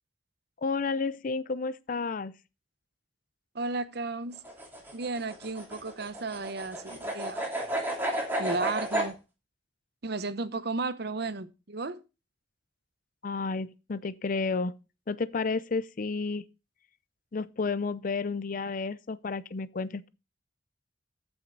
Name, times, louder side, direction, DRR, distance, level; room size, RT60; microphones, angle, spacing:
voice 1, 0.6-2.3 13.2-14.7 15.1-16.4 17.3-20.1, left 4 dB, 45° left, 0.5 m, -31 dB
voice 2, 3.5-4.4 4.9-7.4 8.4-9.2 10.0-12.0, right 3 dB, 60° right, 0.8 m, -33 dB
sound 1, 4.4-9.1, right 1 dB, 10° right, 2.9 m, -32 dB
13.5 x 6.2 x 3.9 m
head